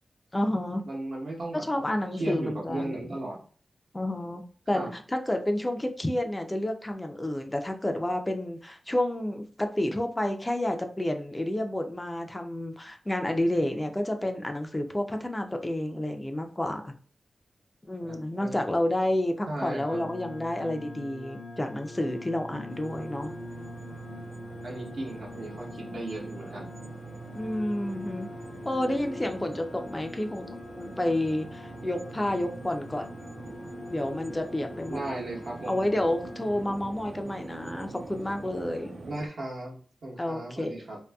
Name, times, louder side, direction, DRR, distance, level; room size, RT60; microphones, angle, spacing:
voice 1, 0.3-0.8 1.5-3.2 3.9-4.4 4.7-16.9 17.8-23.3 27.3-28.3 28.6-33.1 33.9-35.0 35.7-38.9 40.2-40.8, left 1 dB, 20° left, 5 dB, 0.4 m, -30 dB
voice 2, 0.9-1.7 2.1-3.4 4.7-4.9 18.0-18.6 19.5-20.0 24.6-26.7 34.9-35.8 39.1-39.7 40.0-41.0, right 2 dB, 80° right, -3 dB, 1.0 m, -36 dB
sound 1, 19.9-36.6, left 1 dB, 75° left, 0.5 m, -43 dB
sound 2, 22.7-39.3, right 2 dB, 60° right, 0.4 m, -45 dB
2.6 x 2.6 x 2.2 m, 0.43 s
wide cardioid pair, 85°, 0 cm